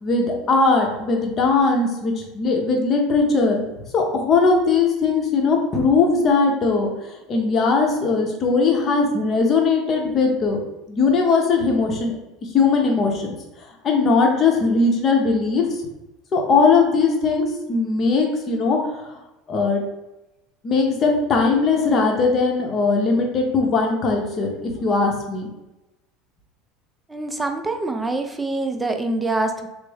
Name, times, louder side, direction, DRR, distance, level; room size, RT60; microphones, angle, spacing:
voice 1, 0.0-3.6 3.9-10.6 10.9-12.1 12.5-13.4 13.8-15.6 16.3-19.2 19.5-19.8 20.6-25.5, left 4 dB, 40° left, 1 dB, 0.7 m, -19 dB
voice 2, 27.1-29.7, right 2 dB, 10° right, 5 dB, 0.4 m, -25 dB
3.4 x 2.0 x 3.3 m, 0.99 s
hypercardioid pair, 75°, 0 cm